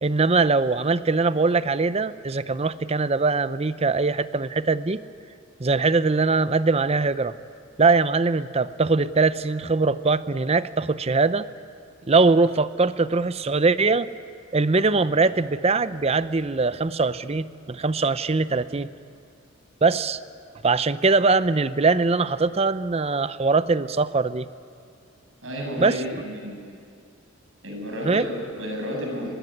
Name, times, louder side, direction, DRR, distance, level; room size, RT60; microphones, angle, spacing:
voice 1, 0.0-5.0 5.6-7.3 7.8-11.5 12.1-14.1 14.5-18.9 19.8-20.2 20.6-24.5 25.8-26.0 28.0-28.3, right 3 dB, 30° right, 14 dB, 0.6 m, -22 dB
voice 2, 25.4-26.8 27.6-29.3, equal, 75° right, 0 dB, 7.9 m, -31 dB
24.5 x 20.0 x 9.9 m, 2.3 s
head